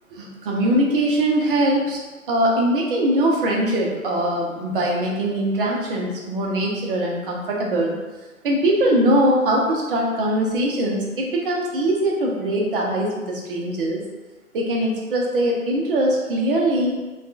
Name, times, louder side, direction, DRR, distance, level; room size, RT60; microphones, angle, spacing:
voice 1, 0.1-2.0 2.3-8.0 8.4-14.0 14.5-17.0, right 1 dB, 40° right, -2 dB, 0.6 m, -21 dB
2.6 x 2.3 x 2.3 m, 1.2 s
figure-of-eight pair, 130°, 42 cm